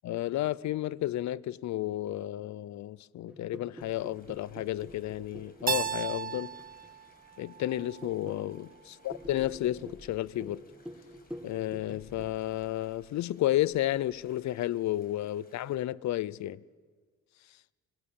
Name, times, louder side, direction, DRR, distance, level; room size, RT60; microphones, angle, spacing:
voice 1, 0.0-6.6 7.4-10.6 11.4-16.6, left 14 dB, 65° left, 0.6 m, -32 dB
sound 1, 3.3-12.3, equal, 5° right, 2.3 m, -48 dB
sound 2, 3.8-15.8, left 2 dB, 30° left, 6.3 m, -60 dB
Keyboard (musical), 5.7-8.5, right 7 dB, 30° right, 0.7 m, -35 dB
25.5 x 20.5 x 7.1 m
cardioid pair, 90°, 30 cm